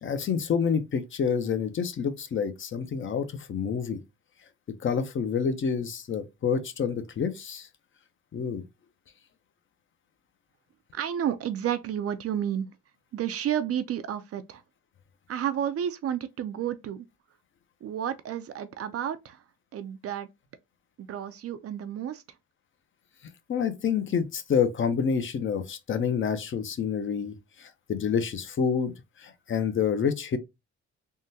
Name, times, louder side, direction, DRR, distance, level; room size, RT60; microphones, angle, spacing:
voice 1, 0.0-4.0 4.8-7.7 8.3-8.6 23.5-30.4, left 6 dB, 40° left, 0.6 m, -28 dB
voice 2, 10.9-12.7 13.1-14.6 15.3-17.1 17.8-19.4 19.7-20.3 21.0-22.2, right 10 dB, 50° right, 0.4 m, -31 dB
3.6 x 2.1 x 2.7 m
cardioid pair, 90°, 30 cm